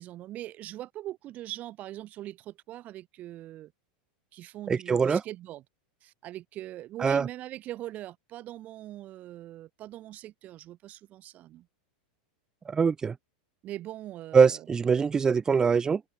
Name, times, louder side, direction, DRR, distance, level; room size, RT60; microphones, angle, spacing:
voice 1, 0.0-3.7 4.3-5.6 6.0-11.7 13.6-14.7, right 14 dB, 30° right, 1.9 m, -41 dB
voice 2, 4.7-5.2 7.0-7.3 12.7-13.2 14.3-16.0, right 6 dB, 15° right, 0.4 m, -23 dB
open air
supercardioid pair, 150°, 5 cm